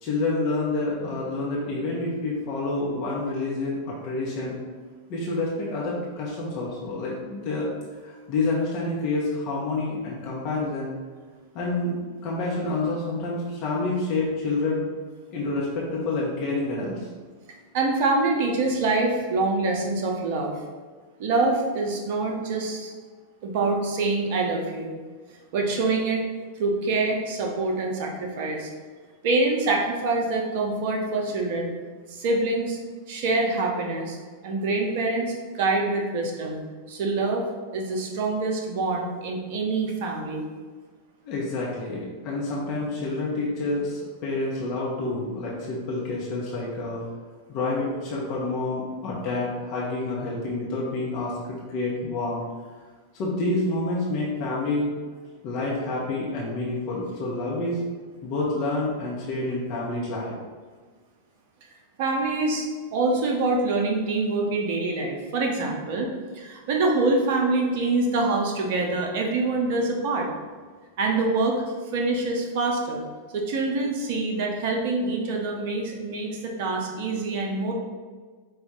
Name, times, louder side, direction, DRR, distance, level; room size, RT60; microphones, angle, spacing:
voice 1, 0.0-4.6 5.1-7.7 8.0-10.9 11.5-14.8 15.3-17.1 41.2-47.0 47.5-52.4 53.1-54.9 55.4-57.8 58.2-60.3, left 2 dB, 40° left, -5 dB, 0.9 m, -28 dB
voice 2, 17.7-20.5 21.2-22.9 23.4-24.9 25.5-26.2 26.6-28.7 29.2-31.7 32.1-32.8 33.1-34.2 34.4-36.6 36.9-37.5 37.7-40.4 62.0-62.7 62.9-70.3 71.0-71.6 71.9-73.0 73.3-77.7, right 3 dB, 50° right, 1 dB, 0.7 m, -25 dB
5.0 x 2.4 x 3.7 m, 1.5 s
figure-of-eight pair, 90°, 0 cm